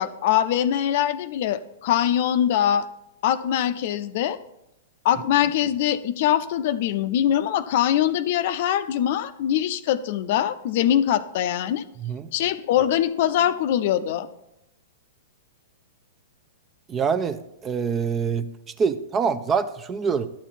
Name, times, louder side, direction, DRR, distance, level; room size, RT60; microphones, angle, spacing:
voice 1, 0.0-2.9 3.2-4.4 5.0-11.8 12.3-14.3, left 10 dB, 55° left, 12 dB, 0.5 m, -23 dB
voice 2, 16.9-18.5 18.8-20.3, right 6 dB, 25° right, 13 dB, 0.6 m, -25 dB
12.0 x 7.3 x 4.2 m, 0.85 s
figure-of-eight pair, 105°, 0 cm